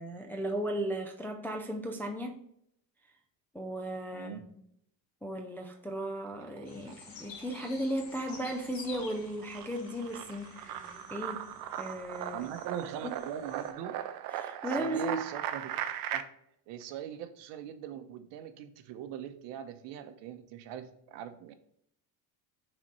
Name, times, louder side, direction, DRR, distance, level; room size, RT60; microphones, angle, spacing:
voice 1, 0.0-2.4 3.5-4.4 5.2-11.5 11.8-12.5 13.0-13.2 14.3-15.3, right 1 dB, 5° left, 2 dB, 0.3 m, -36 dB
voice 2, 4.1-4.4 12.3-14.0 14.7-15.8 16.1-16.2 16.7-21.5, right 9 dB, 70° right, 8 dB, 1.0 m, -41 dB
sound 1, 6.3-7.1 7.4-16.2, right 11 dB, 50° right, 0.6 m, -39 dB
sound 2, 6.6-13.7, left 5 dB, 90° left, 1.8 m, -51 dB
6.0 x 4.3 x 5.3 m, 0.72 s
cardioid pair, 145°, 45 cm